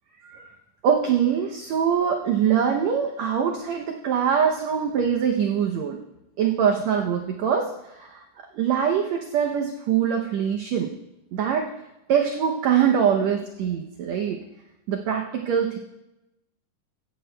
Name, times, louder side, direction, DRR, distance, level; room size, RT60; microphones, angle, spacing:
voice 1, 0.8-6.0 6.4-8.2 8.5-10.9 11.3-11.7 12.1-14.4 14.9-15.8, right 8 dB, 75° right, 2 dB, 1.7 m, -23 dB
16.5 x 12.5 x 2.2 m, 0.94 s
omnidirectional pair, 3.9 m